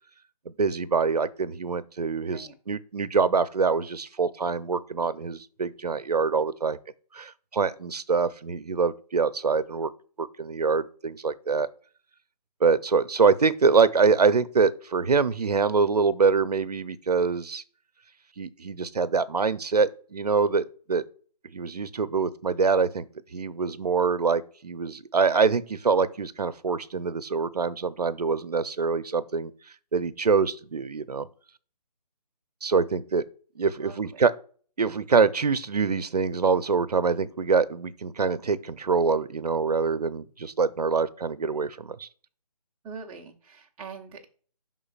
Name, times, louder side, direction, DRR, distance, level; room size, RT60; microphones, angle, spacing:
voice 1, 0.6-6.8 7.1-9.9 10.2-11.7 12.6-17.6 18.4-21.0 21.5-23.1 23.3-29.5 29.9-31.3 32.6-33.2 33.6-34.3 34.8-42.1, right 5 dB, 70° right, 0.7 m, -25 dB
voice 2, 33.8-34.2 42.8-44.3, right 5 dB, 5° right, 0.6 m, -43 dB
11.5 x 3.8 x 2.4 m
figure-of-eight pair, 155°, 21 cm